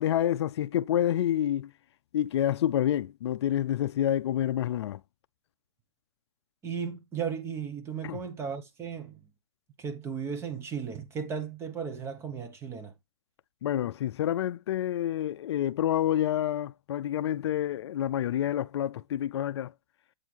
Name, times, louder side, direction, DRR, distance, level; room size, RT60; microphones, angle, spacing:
voice 1, 0.0-1.7 2.1-5.0 8.0-8.2 13.6-19.7, left 11 dB, 60° left, 0.4 m, -28 dB
voice 2, 6.6-9.3 9.8-12.9, right 6 dB, 15° right, 1.1 m, -35 dB
8.2 x 3.7 x 4.7 m
hypercardioid pair, 145°, 16 cm